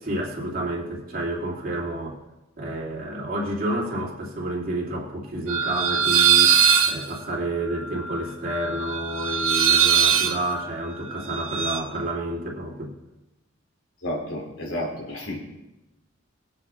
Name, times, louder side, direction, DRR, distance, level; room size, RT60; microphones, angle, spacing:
voice 1, 0.0-2.2 2.6-6.6 6.9-12.9, right 1 dB, 45° right, -3 dB, 2.6 m, -29 dB
sound 1, 5.5-11.8, right 8 dB, 75° right, 1.0 m, -21 dB
voice 2, 14.0-15.4, left 1 dB, 80° left, -2 dB, 3.5 m, -31 dB
20.0 x 7.5 x 3.7 m, 1.0 s
head